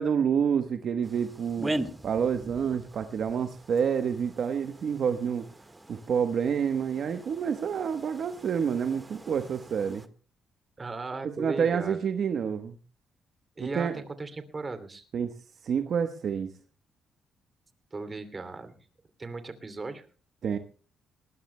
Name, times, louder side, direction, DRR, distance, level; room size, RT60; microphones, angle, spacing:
voice 1, 0.0-1.7 2.0-5.5 5.9-10.1 11.4-12.8 13.7-14.0 15.1-15.3 15.6-16.5 20.4-20.6, right 7 dB, 60° right, 8 dB, 1.1 m, -28 dB
sound 1, 1.0-10.1, right 1 dB, 15° right, 1.5 m, -41 dB
voice 2, 10.8-12.0 13.6-15.0 17.9-18.8 19.2-20.1, right 3 dB, 30° right, 10 dB, 2.7 m, -37 dB
20.5 x 19.5 x 2.2 m, 0.39 s
supercardioid pair, 70°, 0 cm